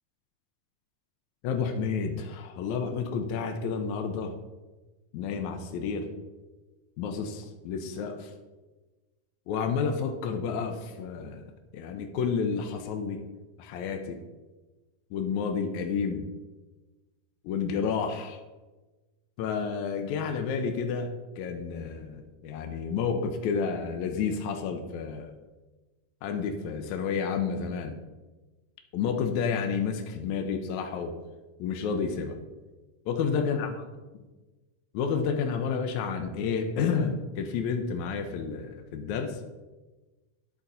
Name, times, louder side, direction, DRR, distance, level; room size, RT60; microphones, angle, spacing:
voice 1, 1.4-4.3 5.1-6.1 7.0-8.3 9.5-11.4 11.7-13.2 13.6-14.2 15.1-16.2 17.4-18.4 19.4-25.3 26.2-27.9 28.9-31.2 31.6-32.4 33.1-33.7 34.9-39.4, left 6 dB, 80° left, 4 dB, 1.7 m, -30 dB
12.0 x 4.1 x 4.0 m, 1.2 s
omnidirectional pair, 3.9 m